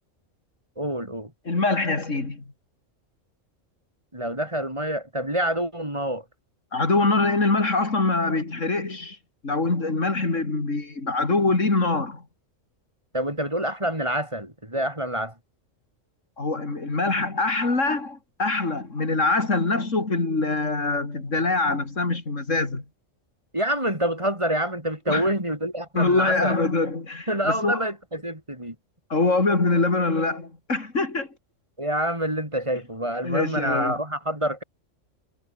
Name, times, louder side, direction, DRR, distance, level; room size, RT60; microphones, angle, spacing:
voice 1, 0.8-1.3 4.1-6.2 13.1-15.3 23.5-26.6 27.3-28.8 31.8-34.6, right 1 dB, 25° right, 5.7 m, -27 dB
voice 2, 1.5-2.4 6.7-9.2 9.4-12.2 16.4-22.8 25.1-25.3 25.9-27.8 29.1-31.3 33.2-34.0, left 3 dB, 75° left, 4.1 m, -24 dB
omnidirectional pair, 1.3 m